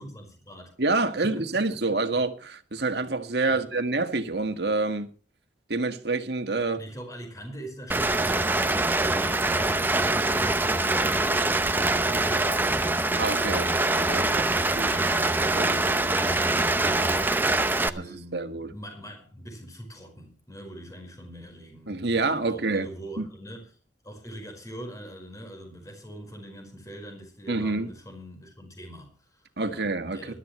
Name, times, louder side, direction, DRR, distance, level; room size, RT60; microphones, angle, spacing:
voice 1, 0.0-0.7 1.2-1.8 3.5-3.7 6.8-8.7 9.0-12.9 13.4-14.5 14.8-17.3 17.7-23.7 24.0-30.3, equal, 20° left, 4.9 m, -43 dB
voice 2, 0.8-5.1 5.7-6.8 13.2-13.8 14.1-14.9 15.5-16.0 18.0-18.7 21.9-22.9 23.2-23.3 27.5-27.9 29.6-30.3, right 3 dB, 65° right, 1.8 m, -27 dB
Rain, 7.9-17.9, right 2 dB, 10° right, 0.7 m, -24 dB
21.5 x 12.5 x 3.2 m
head